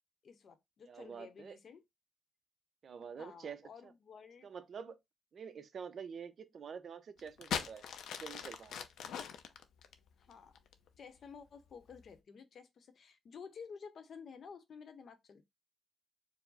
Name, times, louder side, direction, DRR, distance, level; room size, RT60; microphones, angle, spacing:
voice 1, 0.2-1.8 3.2-4.5 10.2-10.6 11.0-15.5, left 6 dB, 55° left, 0.8 m, -52 dB
voice 2, 0.9-1.6 2.8-3.9 4.4-5.0 5.3-7.8 8.2-8.9, right 6 dB, 50° right, 0.6 m, -47 dB
sound 1, 7.2-10.9 11.7-12.1, left 8 dB, 85° left, 0.5 m, -41 dB
4.6 x 2.0 x 4.0 m
cardioid pair, 115°, 0 cm